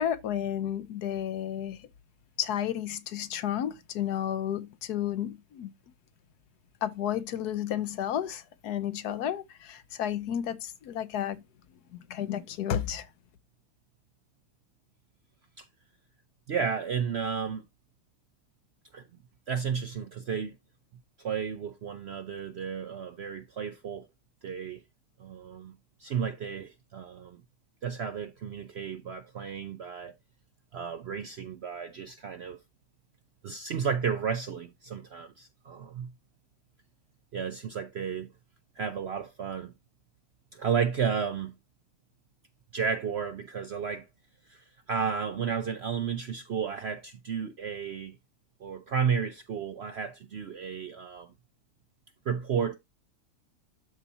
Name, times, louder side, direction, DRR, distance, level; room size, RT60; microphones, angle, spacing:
voice 1, 0.0-1.9 2.4-5.7 6.8-11.4 11.9-13.1, left 10 dB, 75° left, 1.3 m, -32 dB
voice 2, 16.5-17.6 18.9-19.0 19.5-20.6 21.2-24.1 24.4-24.8 25.2-27.4 27.8-30.1 30.7-32.6 33.4-36.1 37.3-38.3 38.7-39.7 40.5-41.6 42.7-44.1 44.5-48.2 48.6-51.3 52.3-52.8, right 7 dB, 65° right, 0.6 m, -33 dB
12.5 x 4.2 x 2.7 m
omnidirectional pair, 1.7 m